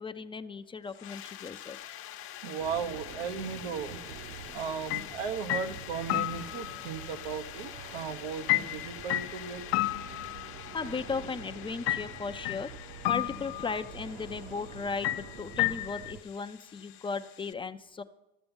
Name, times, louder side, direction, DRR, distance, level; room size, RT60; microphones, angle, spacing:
voice 1, 0.0-1.8 10.7-12.7 13.0-18.0, left 4 dB, 15° left, 9 dB, 0.5 m, -36 dB
sound 1, 0.9-17.5, left 12 dB, 45° left, 0.9 m, -46 dB
voice 2, 2.4-4.0 4.5-9.6, right 6 dB, 80° right, 9 dB, 1.0 m, -36 dB
sound 2, 2.6-16.2, right 7 dB, 50° right, 0.9 m, -47 dB
sound 3, 4.9-5.1 5.5-6.9 8.5-10.8 11.9-12.7 13.0-13.9 15.0-16.1, left 16 dB, 90° left, 0.6 m, -31 dB
13.5 x 6.9 x 5.4 m, 0.94 s
supercardioid pair, 115°, 30 cm